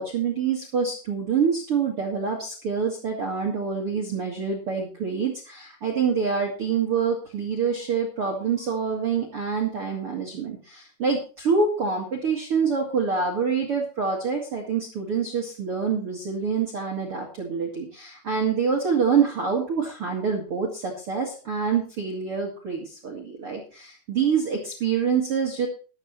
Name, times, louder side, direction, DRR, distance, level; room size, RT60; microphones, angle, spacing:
voice 1, 0.0-25.7, right 6 dB, 50° right, 2 dB, 1.7 m, -26 dB
14.0 x 12.5 x 3.1 m, 0.37 s
omnidirectional pair, 5.4 m